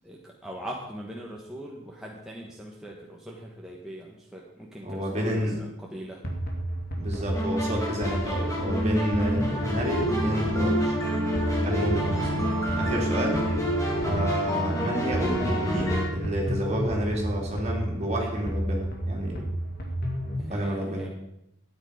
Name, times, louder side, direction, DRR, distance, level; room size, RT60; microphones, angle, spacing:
voice 1, 0.0-6.2 11.6-11.9 20.4-21.1, equal, 5° right, -3 dB, 1.4 m, -40 dB
voice 2, 4.8-5.6 6.9-11.0 11.6-13.4 14.0-19.5 20.5-21.1, equal, 35° right, -1 dB, 3.2 m, -30 dB
sound 1, 6.2-20.5, right 1 dB, 50° left, 2.4 m, -32 dB
sound 2, 7.3-16.1, equal, 15° left, 2.6 m, -28 dB
13.5 x 9.6 x 5.1 m, 0.82 s
head